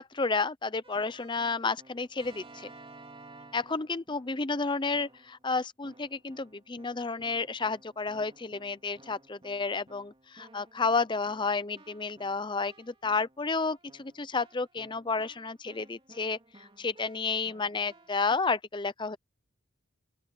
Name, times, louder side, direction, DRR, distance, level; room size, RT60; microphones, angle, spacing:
voice 1, 0.0-2.7 3.5-19.2, left 4 dB, 20° left, 0.6 m, -31 dB
Keyboard (musical), 0.8-4.5 4.9-5.4 5.8-18.4, right 2 dB, 25° right, 2.9 m, -56 dB
open air
head